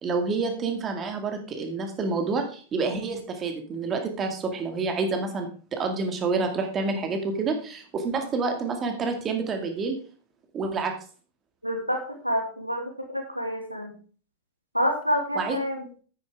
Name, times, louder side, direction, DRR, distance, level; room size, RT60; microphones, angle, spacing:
voice 1, 0.0-10.0 10.5-10.9 15.4-15.6, right 4 dB, 25° right, 4 dB, 2.1 m, -28 dB
voice 2, 11.6-13.9 14.7-15.9, equal, 90° left, 3 dB, 2.1 m, -28 dB
10.0 x 9.3 x 3.6 m, 0.41 s
figure-of-eight pair, 90°, 0 cm